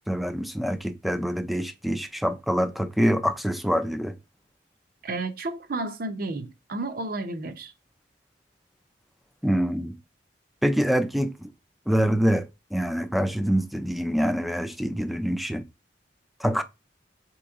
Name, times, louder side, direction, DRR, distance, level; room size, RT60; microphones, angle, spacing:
voice 1, 0.1-4.2 9.4-10.0 10.6-11.5 11.9-12.5 12.7-15.6 16.4-16.6, equal, ahead, 0.3 m, -25 dB
voice 2, 5.0-7.7, right 2 dB, 55° right, 0.7 m, -32 dB
4.4 x 3.0 x 3.5 m
head